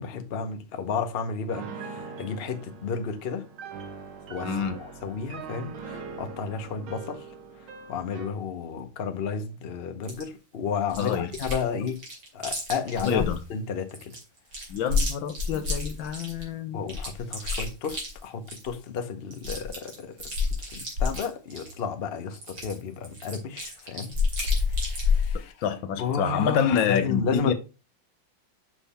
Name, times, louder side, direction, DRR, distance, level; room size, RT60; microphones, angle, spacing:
voice 1, 0.0-3.5 4.3-7.3 7.9-12.0 12.3-13.2 13.5-14.2 16.7-20.3 20.7-24.2 24.7-25.5 26.0-27.5, left 5 dB, 50° left, 0.7 m, -32 dB
Piano, 1.5-8.4, right 5 dB, 90° right, 1.8 m, -41 dB
voice 2, 4.4-4.8 11.0-11.6 13.0-13.4 14.7-16.8 25.6-27.5, left 8 dB, 75° left, 1.6 m, -27 dB
Chewing mastication, 10.1-10.2 10.9-11.6 11.9-13.4 13.9-16.4 16.9-18.7 19.0-19.1 19.3-21.8 22.3-25.4, left 4 dB, 55° right, 3.2 m, -29 dB
6.2 x 5.4 x 4.2 m
omnidirectional pair, 2.2 m